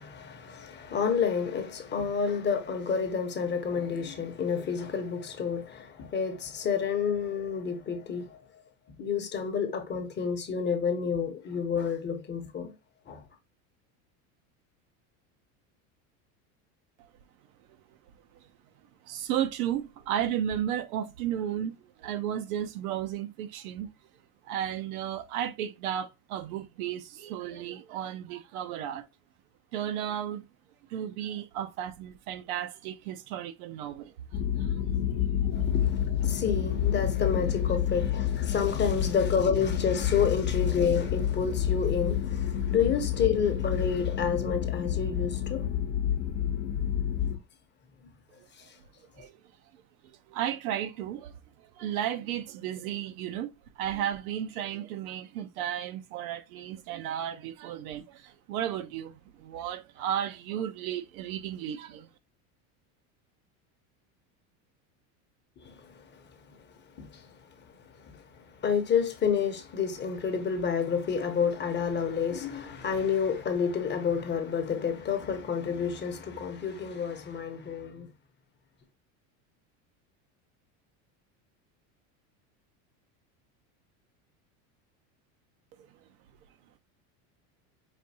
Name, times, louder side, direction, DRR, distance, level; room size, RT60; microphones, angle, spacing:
voice 1, 0.0-8.4 9.0-12.7 13.1-13.2 35.5-45.7 65.6-65.7 67.0-67.2 68.1-68.2 68.6-78.1, left 6 dB, 25° left, 0.8 m, -29 dB
voice 2, 19.0-23.9 24.4-29.0 29.7-30.5 30.9-34.8 35.5-35.7 49.2-49.4 50.3-62.1, right 10 dB, 80° right, 0.7 m, -34 dB
sound 1, 34.3-47.4, left 10 dB, 60° left, 0.8 m, -29 dB
5.2 x 2.6 x 2.7 m
supercardioid pair, 125°, 41 cm